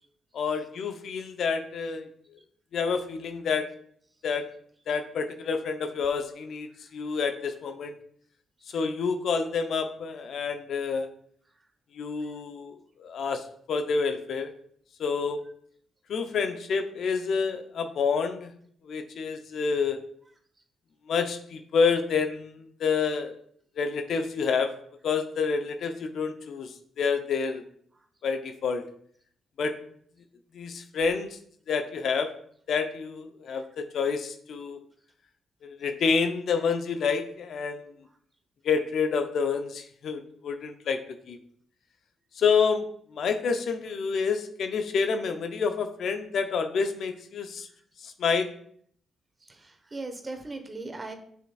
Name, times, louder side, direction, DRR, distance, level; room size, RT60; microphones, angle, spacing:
voice 1, 0.3-2.1 2.7-3.7 4.2-4.5 4.9-8.0 8.7-11.1 11.9-12.7 13.0-14.5 15.0-15.4 16.1-18.5 18.9-20.0 21.1-23.4 23.8-24.7 25.0-27.6 28.2-28.8 29.6-29.7 30.5-31.4 31.7-32.3 32.7-34.8 35.6-37.9 38.6-41.0 41.3-41.4 42.4-42.8 43.1-47.7 48.0-48.5, left 5 dB, 65° left, 7 dB, 0.6 m, -28 dB
voice 2, 49.5-51.1, right 3 dB, 30° right, 6 dB, 1.3 m, -38 dB
6.6 x 6.1 x 2.4 m, 0.63 s
hypercardioid pair, 45°, 0 cm